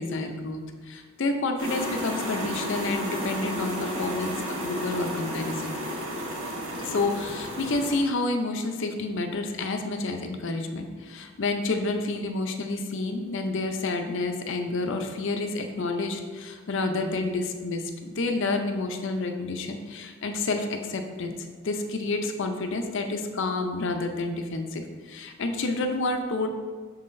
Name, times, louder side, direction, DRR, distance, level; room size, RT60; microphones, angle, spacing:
voice 1, 0.0-5.7 6.8-26.5, left 3 dB, 55° left, 5 dB, 0.5 m, -29 dB
sound 1, 1.6-8.0, equal, 60° right, 1.1 m, -32 dB
6.8 x 5.6 x 2.6 m, 1.5 s
head